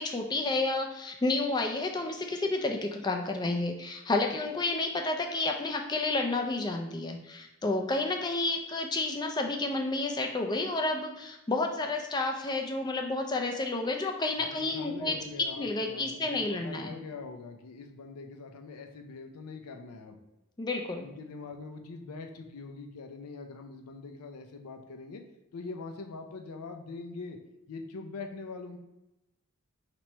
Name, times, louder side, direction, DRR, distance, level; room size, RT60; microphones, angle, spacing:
voice 1, 0.0-15.2 15.6-17.0 20.6-21.1, left 2 dB, 20° left, 2 dB, 0.4 m, -30 dB
voice 2, 14.4-20.2 21.0-25.2 25.5-27.4 27.7-28.8, left 4 dB, 90° left, 4 dB, 0.5 m, -43 dB
3.0 x 3.0 x 4.4 m, 0.93 s
head